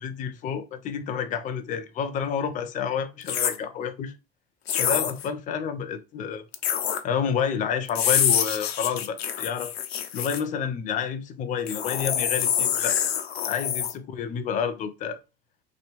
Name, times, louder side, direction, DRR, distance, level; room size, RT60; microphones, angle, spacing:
voice 1, 0.0-4.1 4.8-6.4 7.0-9.7 10.1-13.0 13.4-15.2, left 7 dB, 25° left, 0.4 m, -29 dB
sound 1, 3.2-3.6 4.7-5.3 6.5-7.0 7.9-10.4 11.7-13.9, left 9 dB, 85° left, 0.5 m, -26 dB
3.1 x 2.9 x 2.8 m
figure-of-eight pair, 70°, 30 cm